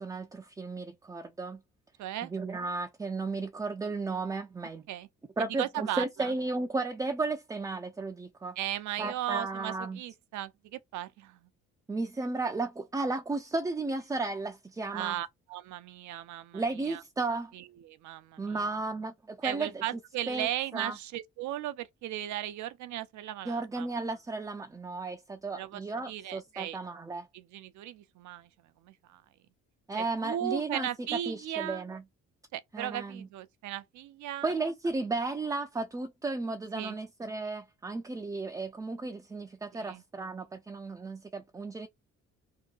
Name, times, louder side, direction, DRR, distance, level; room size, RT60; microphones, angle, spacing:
voice 1, 0.0-1.6 2.2-4.8 5.4-8.6 9.0-10.0 11.9-15.2 16.5-17.5 18.4-19.8 20.3-21.0 23.5-27.3 29.9-30.9 31.3-32.0 32.7-33.3 34.4-41.9, right 3 dB, 10° right, 0.3 m, -34 dB
voice 2, 2.0-2.3 4.9-5.1 5.4-6.3 8.6-11.4 14.9-17.0 17.5-18.7 19.4-23.9 25.6-26.8 27.3-28.5 28.8-29.2 29.9-31.8 32.5-34.5 36.7-37.0 39.7-40.0, right 12 dB, 75° right, 0.5 m, -37 dB
2.8 x 2.2 x 2.4 m
cardioid pair, 90°, 30 cm